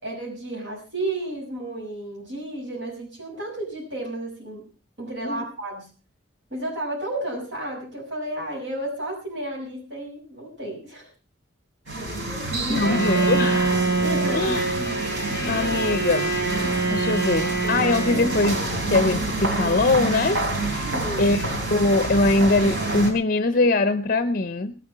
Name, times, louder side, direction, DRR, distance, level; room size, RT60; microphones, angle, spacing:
voice 1, 0.0-4.6 5.0-5.8 6.5-11.1 12.1-13.3 14.0-14.4 20.8-21.3, right 1 dB, 70° right, -3 dB, 6.2 m, -32 dB
sound 1, 11.9-23.1, right 2 dB, 85° right, 4.8 m, -28 dB
voice 2, 12.7-13.8 14.3-14.6 15.5-16.4 16.9-20.9 21.2-21.4 21.7-24.7, left 2 dB, 45° left, 11 dB, 0.7 m, -22 dB
Bowed string instrument, 12.7-19.0, right 3 dB, 50° right, 5.4 m, -25 dB
19.5 x 8.7 x 5.5 m, 0.36 s
head